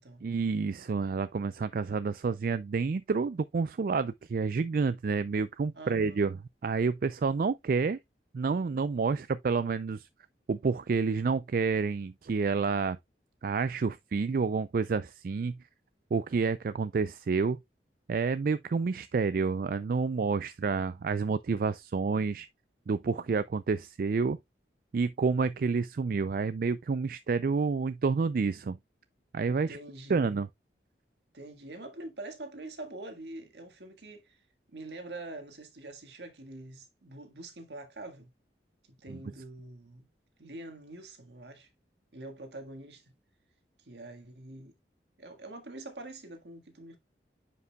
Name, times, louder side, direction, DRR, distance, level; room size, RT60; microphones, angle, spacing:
voice 1, 0.2-6.4 6.6-8.0 8.3-10.1 10.5-13.0 13.4-15.6 16.1-17.6 18.1-22.5 22.9-24.4 24.9-28.8 29.3-29.8 30.1-30.5 39.1-39.2, right 4 dB, 55° right, 0.4 m, -29 dB
voice 2, 5.7-6.3 29.5-30.3 31.3-34.4 34.7-38.3 38.9-40.1 40.4-41.7 42.1-43.1 43.8-44.7 45.2-47.0, right 2 dB, 75° right, 1.7 m, -45 dB
9.5 x 5.3 x 2.2 m
head